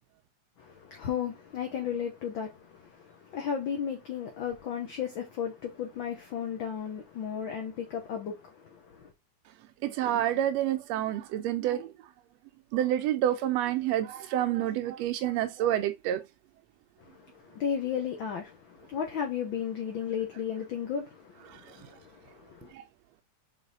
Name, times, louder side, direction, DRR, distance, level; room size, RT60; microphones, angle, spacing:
voice 1, 0.6-9.1 17.0-22.7, left 8 dB, 60° left, 1.3 m, -35 dB
voice 2, 9.8-11.9 12.7-16.2, right 12 dB, 85° right, 1.5 m, -28 dB
6.3 x 4.0 x 4.1 m
omnidirectional pair, 3.5 m